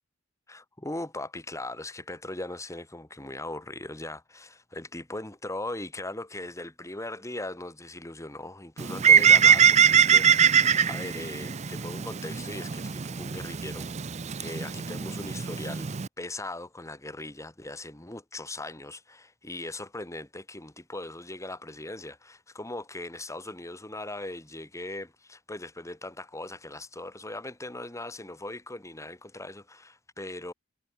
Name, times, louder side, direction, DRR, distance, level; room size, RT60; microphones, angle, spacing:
voice 1, 0.5-14.0 14.4-15.9 16.2-30.5, left 2 dB, 15° left, 2.4 m, -39 dB
Bird, 8.8-16.1, right 7 dB, 35° right, 0.5 m, -22 dB
head